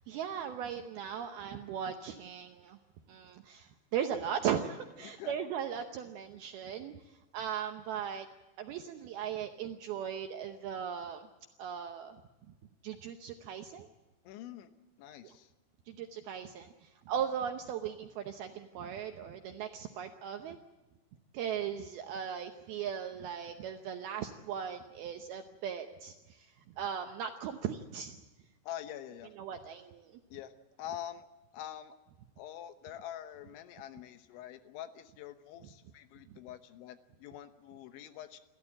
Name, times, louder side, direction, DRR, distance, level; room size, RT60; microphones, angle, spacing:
voice 1, 0.0-2.8 3.1-8.3 8.6-11.3 11.6-12.2 12.8-13.9 15.2-15.4 15.9-20.6 21.3-28.2 29.4-30.2, right 8 dB, 75° right, 6 dB, 2.3 m, -38 dB
voice 2, 5.0-5.3 14.2-14.7 15.0-15.5 28.6-29.3 30.3-30.5 30.8-31.3 31.5-31.9 32.4-38.4, left 11 dB, 80° left, 9 dB, 3.4 m, -45 dB
28.5 x 14.0 x 8.7 m, 1.1 s
omnidirectional pair, 5.5 m